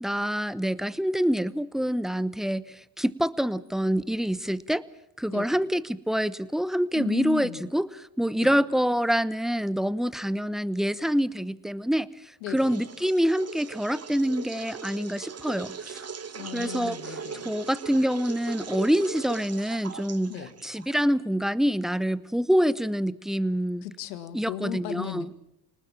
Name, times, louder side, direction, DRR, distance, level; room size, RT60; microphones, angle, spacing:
voice 1, 0.0-4.8 5.2-12.1 12.5-16.0 16.5-20.4 20.6-23.9 24.3-25.3, equal, ahead, 18 dB, 0.9 m, -26 dB
voice 2, 6.9-7.7 8.4-8.6 12.4-12.8 16.3-17.5 20.3-20.5 23.8-25.3, left 13 dB, 85° left, 11 dB, 1.9 m, -36 dB
sound 1, 12.6-21.1, right 6 dB, 30° right, 1.5 m, -40 dB
27.0 x 19.5 x 7.4 m, 0.81 s
hypercardioid pair, 65°, 50 cm